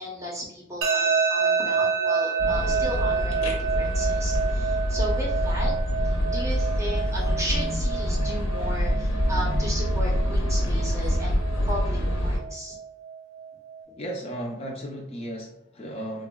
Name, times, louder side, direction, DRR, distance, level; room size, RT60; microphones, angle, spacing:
voice 1, 0.0-5.7 6.0-12.8, equal, 15° right, -3 dB, 0.6 m, -35 dB
sound 1, 0.8-13.8, right 6 dB, 70° right, 0.5 m, -29 dB
sound 2, 2.4-12.4, equal, 80° left, 0.7 m, -26 dB
voice 2, 14.0-16.3, right 1 dB, 30° left, -1 dB, 0.4 m, -35 dB
3.5 x 2.1 x 2.2 m, 0.77 s
head